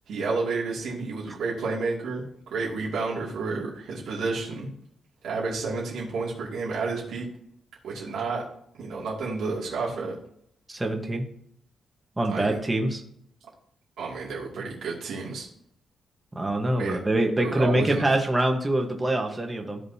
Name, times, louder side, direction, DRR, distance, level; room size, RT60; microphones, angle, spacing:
voice 1, 0.1-4.7 5.2-7.3 7.8-8.4 8.7-10.2 12.3-12.6 14.0-15.5 16.8-17.0 17.4-18.1, right 4 dB, 80° right, -5 dB, 2.5 m, -30 dB
voice 2, 10.7-11.3 12.2-13.0 16.3-19.8, right 1 dB, 15° right, 3 dB, 1.3 m, -25 dB
14.5 x 5.2 x 2.8 m, 0.70 s
wide cardioid pair, 150°, 0 cm